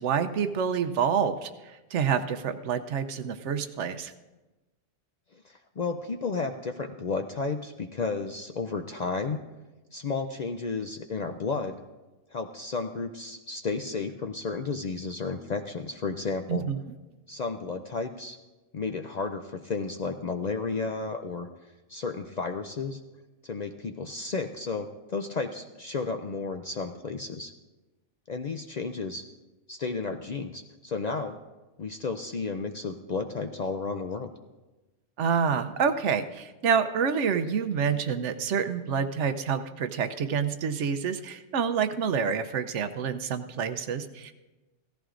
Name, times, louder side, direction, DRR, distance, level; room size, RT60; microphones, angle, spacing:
voice 1, 0.0-1.5 1.9-4.1 16.5-16.8 35.2-44.3, right 7 dB, 80° right, 10 dB, 1.0 m, -27 dB
voice 2, 5.3-9.4 9.9-11.8 12.3-16.7 17.3-18.4 18.7-21.5 21.9-23.0 23.4-27.5 28.3-29.2 29.7-31.4 31.8-34.3, left 4 dB, 50° left, 6 dB, 0.5 m, -32 dB
16.5 x 14.0 x 2.5 m, 1.1 s
omnidirectional pair, 1.2 m